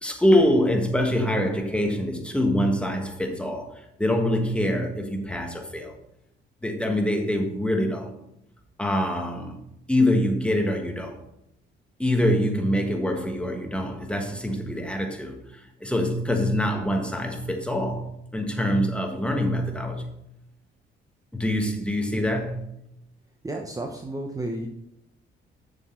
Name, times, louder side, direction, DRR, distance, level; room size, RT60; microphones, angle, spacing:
voice 1, 0.0-3.7 4.0-5.9 6.6-8.1 8.8-9.6 9.9-11.2 12.0-15.4 15.8-20.1 21.3-22.6, left 1 dB, 5° left, 1.5 m, -24 dB
voice 2, 23.4-24.7, right 1 dB, 15° right, 0.9 m, -32 dB
7.2 x 6.5 x 4.5 m
cardioid pair, 90°, 20 cm